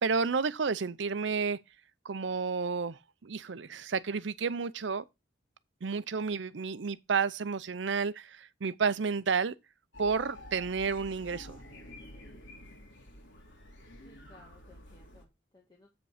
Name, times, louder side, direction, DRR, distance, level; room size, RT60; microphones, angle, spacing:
voice 1, 0.0-1.6 2.0-5.0 5.8-9.5 10.0-11.6, right 5 dB, 75° right, 0.6 m, -31 dB
sound 1, 9.9-15.2, left 1 dB, 90° left, 2.8 m, -49 dB
voice 2, 14.0-15.9, left 1 dB, 25° left, 1.7 m, -60 dB
8.2 x 5.2 x 4.9 m
head